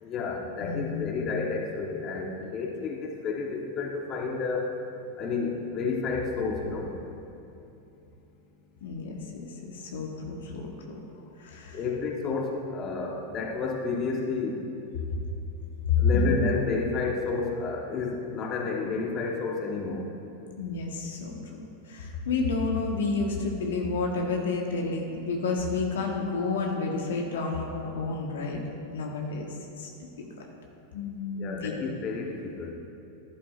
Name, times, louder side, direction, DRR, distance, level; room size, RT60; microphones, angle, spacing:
voice 1, 0.0-4.7 5.2-6.9 11.7-14.6 16.0-20.1 31.4-32.7, left 4 dB, 40° left, 1 dB, 1.2 m, -31 dB
voice 2, 0.6-1.3 8.8-9.2 9.5-11.0 11.4-11.8 15.9-16.5 20.6-21.4 21.9-28.6 28.9-29.5 29.8-29.9 30.2-30.3 30.9-31.7, left 4 dB, 70° left, 1 dB, 1.3 m, -29 dB
11.5 x 11.5 x 2.5 m, 2.9 s
hypercardioid pair, 95°, 0 cm